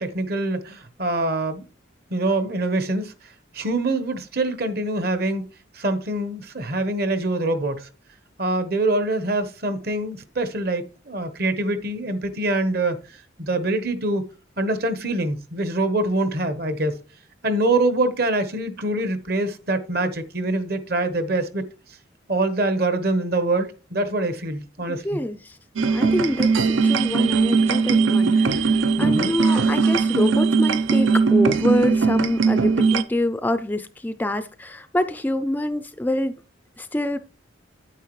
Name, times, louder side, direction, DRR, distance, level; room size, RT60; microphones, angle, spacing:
voice 1, 0.0-1.6 2.1-3.1 3.5-5.4 5.7-7.9 8.4-13.0 13.4-14.2 14.6-17.0 17.4-21.6 22.3-25.2 29.0-29.3, right 2 dB, 50° right, 1.1 m, -24 dB
voice 2, 24.9-25.6 25.9-36.3 36.8-37.2, left 1 dB, 10° left, 0.3 m, -26 dB
sound 1, 25.8-33.0, right 4 dB, 80° right, 0.6 m, -19 dB
9.2 x 8.7 x 3.1 m
head